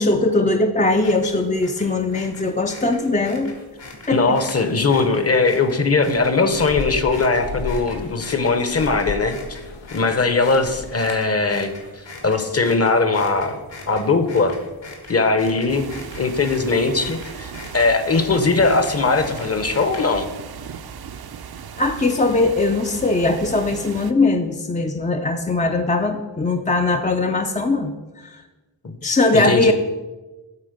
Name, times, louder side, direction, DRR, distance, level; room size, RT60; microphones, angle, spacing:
voice 1, 0.0-3.6 4.1-4.4 21.8-28.4 29.0-29.7, left 2 dB, 20° left, 5 dB, 0.4 m, -20 dB
sound 1, 0.9-20.4, left 2 dB, 70° left, 2.1 m, -41 dB
voice 2, 4.1-9.4 9.9-13.6 13.9-14.6 15.1-20.3 28.8-29.7, left 3 dB, 35° left, 9 dB, 0.8 m, -20 dB
sound 2, 6.1-11.1, left 3 dB, 85° left, 0.9 m, -34 dB
sound 3, 15.7-24.1, right 7 dB, 60° right, 0.6 m, -37 dB
8.5 x 4.1 x 6.6 m, 1.1 s
wide cardioid pair, 90°, 44 cm